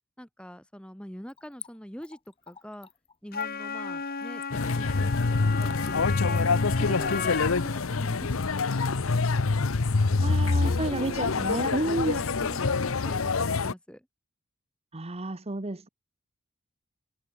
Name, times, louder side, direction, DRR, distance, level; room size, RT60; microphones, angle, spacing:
voice 1, 0.2-2.2 2.5-2.9 3.2-6.4 6.8-9.6 10.3-11.4 12.0-14.1, equal, 5° left, 1.8 m, -44 dB
Splash splatter / Trickle dribble, 1.3-7.7 8.0-8.1, left 8 dB, 25° left, 7.1 m, -51 dB
Wind instrument woodwind instrument, 3.3-7.8, left 5 dB, 45° left, 2.7 m, -34 dB
sound 1, 4.5-13.7, left 4 dB, 70° left, 0.8 m, -26 dB
voice 2, 10.2-12.3 14.9-15.9, right 2 dB, 30° right, 1.0 m, -31 dB
head